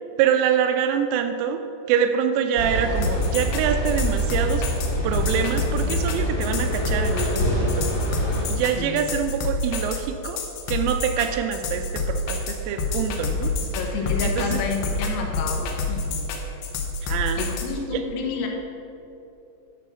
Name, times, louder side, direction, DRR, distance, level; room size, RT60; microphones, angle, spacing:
voice 1, 0.2-1.6 1.9-4.6 5.0-7.9 8.3-13.5 14.2-14.6 17.0-17.4 17.9-18.0, right 8 dB, 85° right, 7 dB, 2.9 m, -25 dB
sound 1, 2.6-8.4, equal, 45° left, 1.5 m, -25 dB
sound 2, 3.0-17.7, left 3 dB, 70° left, 2.8 m, -27 dB
voice 2, 13.7-16.2 17.4-18.5, left 5 dB, 90° left, 1 dB, 3.9 m, -30 dB
11.0 x 5.4 x 6.8 m, 2.8 s
omnidirectional pair, 6.0 m